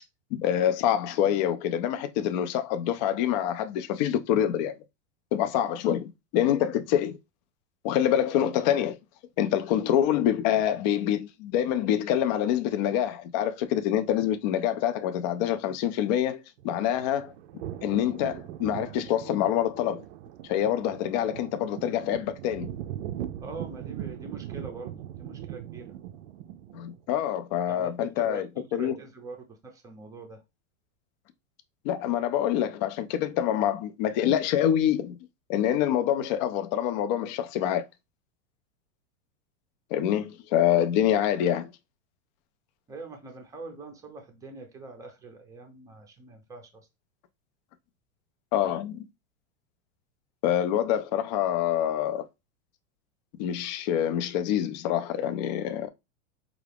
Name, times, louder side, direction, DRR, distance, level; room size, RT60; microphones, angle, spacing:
voice 1, 0.3-4.7 5.3-7.2 7.8-9.0 9.4-17.3 17.8-20.0 20.5-22.7 26.7-29.0 31.8-35.2 35.5-37.8 39.9-41.7 48.5-49.0 50.4-52.3 53.4-55.9, left 10 dB, 40° left, 0.4 m, -26 dB
sound 1, 16.6-27.0, right 11 dB, 65° right, 0.5 m, -40 dB
voice 2, 23.4-25.8 27.7-29.4 29.6-30.4 42.9-46.6, right 3 dB, 10° right, 0.6 m, -43 dB
4.7 x 2.4 x 3.3 m
supercardioid pair, 155°, 37 cm